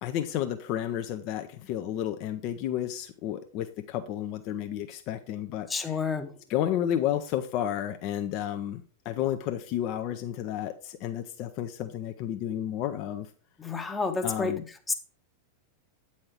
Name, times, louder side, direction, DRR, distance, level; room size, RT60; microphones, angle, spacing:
voice 1, 0.0-6.1 6.5-13.3 14.2-14.7, left 11 dB, 40° left, 0.5 m, -32 dB
voice 2, 5.7-6.3 13.6-14.5 14.9-15.0, left 4 dB, 15° left, 0.8 m, -29 dB
8.7 x 4.2 x 4.8 m
figure-of-eight pair, 90°, 0 cm